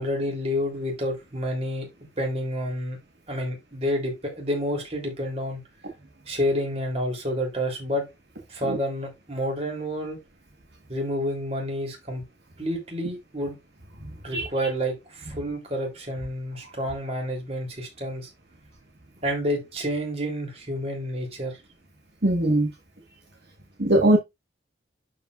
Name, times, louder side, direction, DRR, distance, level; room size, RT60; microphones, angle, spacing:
voice 1, 0.0-1.9 2.2-3.0 3.3-5.6 6.3-8.0 8.5-10.2 10.9-12.2 12.6-13.6 14.2-18.3 19.2-21.6, equal, 35° right, 3.5 m, -29 dB
voice 2, 22.2-22.7 23.8-24.2, right 1 dB, 60° right, 1.6 m, -20 dB
11.5 x 5.1 x 2.5 m
head